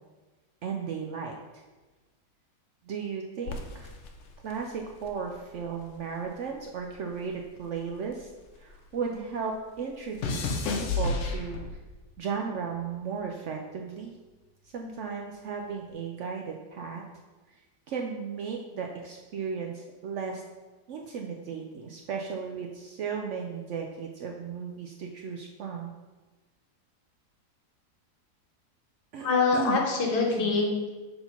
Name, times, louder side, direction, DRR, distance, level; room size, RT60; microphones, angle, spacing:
voice 1, 0.6-1.4 2.8-3.9 4.4-8.3 8.6-11.6 12.2-14.2 14.6-17.0 17.5-17.6 17.9-20.4 20.9-25.9 29.1-29.3 29.5-29.8 30.3-30.5, right 6 dB, 70° right, 2 dB, 0.7 m, -35 dB
sound 1, 3.5-6.0 6.2-8.9 9.2-12.0 12.7-13.1, left 3 dB, 60° left, 0.9 m, -34 dB
voice 2, 29.2-30.9, left 4 dB, 85° left, 0 dB, 1.6 m, -25 dB
4.5 x 3.8 x 5.6 m, 1.2 s
omnidirectional pair, 1.7 m